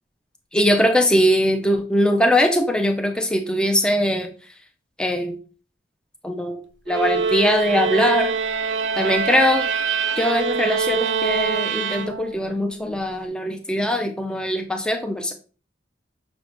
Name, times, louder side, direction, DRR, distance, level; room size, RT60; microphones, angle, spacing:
voice 1, 0.5-4.3 5.0-5.4 6.2-6.6 6.9-8.3 9.0-9.7 10.2-15.3, equal, 5° left, 4 dB, 0.3 m, -21 dB
sound 1, 6.9-12.6, right 6 dB, 75° right, 0.3 m, -24 dB
5.8 x 3.4 x 2.5 m, 0.39 s
head